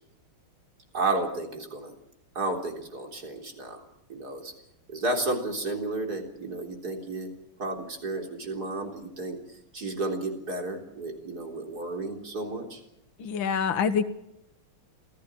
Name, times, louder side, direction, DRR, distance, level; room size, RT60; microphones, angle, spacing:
voice 1, 0.9-2.0 2.3-3.8 4.1-4.5 4.9-7.3 7.6-9.4 9.7-12.8, right 2 dB, 45° right, 2 dB, 4.2 m, -32 dB
voice 2, 13.2-14.0, left 6 dB, 65° left, 9 dB, 2.1 m, -25 dB
27.5 x 16.0 x 7.4 m, 0.84 s
omnidirectional pair, 2.3 m